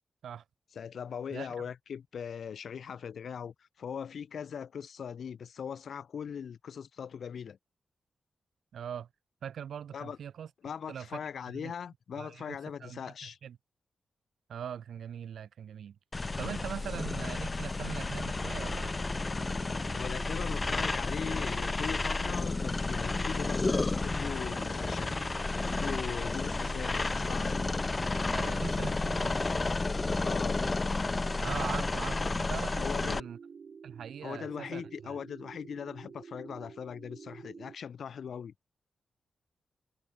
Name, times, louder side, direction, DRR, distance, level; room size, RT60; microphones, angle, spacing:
voice 1, 0.7-7.6 9.9-10.2 10.6-13.4 19.9-25.2 25.6-27.6 30.2-30.6 32.8-33.3 34.2-38.5, left 7 dB, 75° left, 1.4 m, -40 dB
voice 2, 8.7-9.1 9.4-10.5 10.9-11.7 12.1-13.6 14.5-16.0 16.4-18.9 28.3-29.4 31.4-33.4 33.8-35.2, right 8 dB, 90° right, 1.4 m, -41 dB
sound 1, 16.1-33.2, left 3 dB, 30° left, 0.5 m, -31 dB
sound 2, 18.3-37.8, right 6 dB, 60° right, 1.6 m, -49 dB
wide cardioid pair, 100°, 0 cm